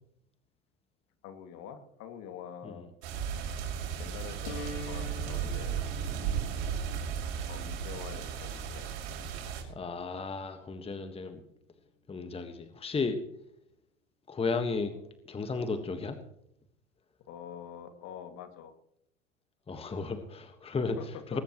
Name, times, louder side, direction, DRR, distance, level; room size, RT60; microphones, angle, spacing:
voice 1, 1.2-2.9 4.0-5.8 7.5-8.9 17.3-18.7 21.0-21.1 21.3-21.4, left 8 dB, 45° left, 7 dB, 2.4 m, -45 dB
sound 1, 3.0-9.6, right 7 dB, 60° right, 5.8 m, -35 dB
sound 2, 4.5-10.4, left 2 dB, 75° left, 3.2 m, -48 dB
voice 2, 9.7-11.4 12.1-13.2 14.3-14.9 15.3-16.2 19.7-21.4, left 4 dB, 15° left, 8 dB, 1.6 m, -34 dB
20.5 x 19.0 x 3.1 m, 0.75 s
figure-of-eight pair, 85°, 36 cm